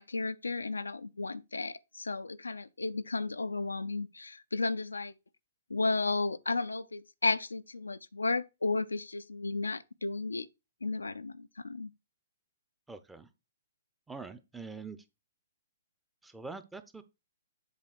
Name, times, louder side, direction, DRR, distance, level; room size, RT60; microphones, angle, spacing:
voice 1, 0.0-5.1 5.7-10.5 10.8-11.9, left 3 dB, 90° left, 0.5 m, -33 dB
voice 2, 12.9-13.3 14.1-15.0 16.2-17.0, right 4 dB, 5° right, 0.7 m, -44 dB
7.4 x 3.4 x 6.0 m
hypercardioid pair, 125°, 0 cm